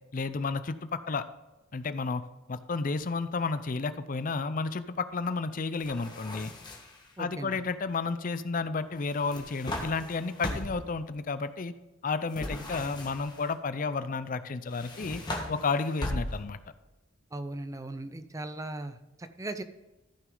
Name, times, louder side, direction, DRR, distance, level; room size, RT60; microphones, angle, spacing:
voice 1, 0.1-1.2 1.7-2.2 2.5-6.5 7.2-11.7 12.0-15.2 15.5-16.6, left 4 dB, 40° left, 12 dB, 0.5 m, -32 dB
sound 1, 5.8-7.1 9.1-10.9 12.3-13.5 14.7-16.6, left 1 dB, 20° left, 1.5 m, -38 dB
voice 2, 7.2-7.6 17.3-19.6, right 2 dB, 15° right, 9 dB, 0.5 m, -38 dB
14.0 x 6.2 x 3.9 m, 1.1 s
head